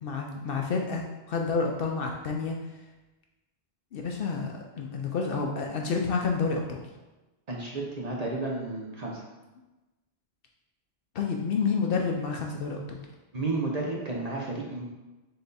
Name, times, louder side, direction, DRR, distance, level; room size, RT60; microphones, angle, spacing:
voice 1, 0.0-2.5 3.9-6.8 11.1-13.0, left 5 dB, 65° left, 1 dB, 0.7 m, -29 dB
voice 2, 7.5-9.2 13.3-14.8, right 2 dB, 40° right, -3 dB, 0.7 m, -32 dB
3.9 x 3.4 x 4.0 m, 1.1 s
omnidirectional pair, 1.2 m